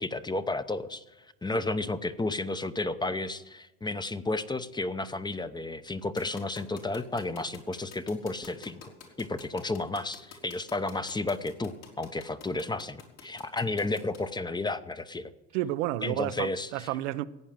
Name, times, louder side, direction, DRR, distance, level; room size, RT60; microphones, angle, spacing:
voice 1, 0.0-8.9 9.2-15.3 16.0-16.9, left 2 dB, 10° left, 0.7 m, -32 dB
sound 1, 6.2-14.2, left 7 dB, 75° left, 4.1 m, -48 dB
voice 2, 15.5-17.2, right 15 dB, 90° right, 0.7 m, -31 dB
15.0 x 9.1 x 7.5 m
supercardioid pair, 105°, 35 cm